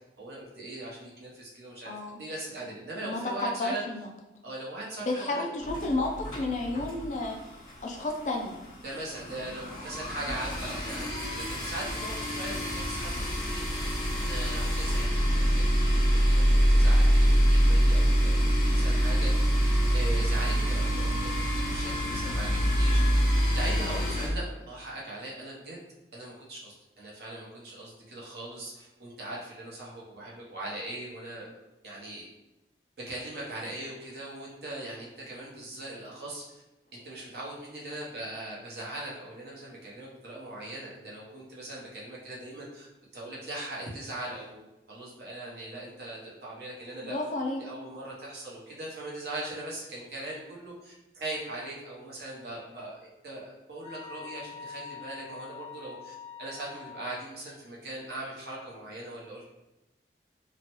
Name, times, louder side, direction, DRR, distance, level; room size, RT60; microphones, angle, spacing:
voice 1, 0.2-3.8 4.4-5.4 8.8-13.8 14.3-19.5 19.9-23.0 23.5-25.8 26.1-31.6 31.8-32.3 33.1-36.6 36.9-42.9 43.1-47.2 47.6-59.5, right 1 dB, 65° right, -5 dB, 0.8 m, -40 dB
voice 2, 1.8-2.2 3.0-4.1 5.0-7.4 7.8-8.6 47.0-47.6, left 2 dB, 45° left, 1 dB, 0.4 m, -31 dB
sound 1, 5.6-7.4 7.7-7.9 8.2-8.3 8.5-24.3, equal, 25° left, 1.3 m, -25 dB
sound 2, 53.8-57.1, left 6 dB, 15° right, 0.9 m, -44 dB
3.1 x 2.1 x 2.9 m, 0.99 s
head